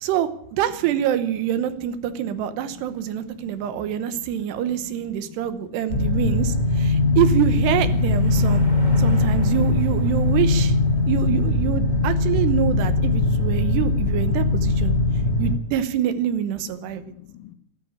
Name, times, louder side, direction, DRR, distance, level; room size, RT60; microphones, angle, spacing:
voice 1, 0.0-8.7 9.0-10.8 11.1-14.9 15.4-17.1, right 10 dB, 75° right, 12 dB, 3.0 m, -25 dB
voice 2, 2.6-3.1 3.3-4.1 4.7-6.2 6.9-7.2 13.5-13.7 14.9-15.4 16.8-17.6, left 11 dB, 70° left, 7 dB, 2.6 m, -46 dB
sound 1, 5.9-15.6, left 2 dB, 20° left, 1.7 m, -20 dB
sound 2, 7.2-11.2, right 1 dB, 55° right, 0.4 m, -34 dB
13.0 x 12.5 x 8.8 m, 0.70 s
omnidirectional pair, 5.0 m